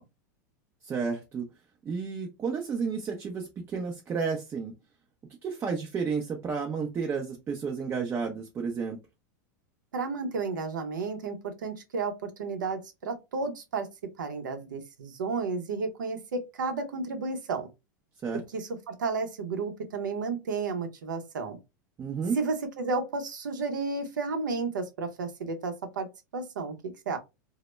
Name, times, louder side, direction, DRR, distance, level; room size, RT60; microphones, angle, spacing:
voice 1, 0.8-1.5 1.9-4.7 5.4-9.0 18.2-18.4 22.0-22.4, right 5 dB, 25° right, 0.4 m, -31 dB
voice 2, 9.9-13.9 14.2-17.7 18.5-21.6 22.3-27.2, right 4 dB, 90° right, 0.6 m, -32 dB
2.0 x 2.0 x 3.0 m
hypercardioid pair, 115°, 10 cm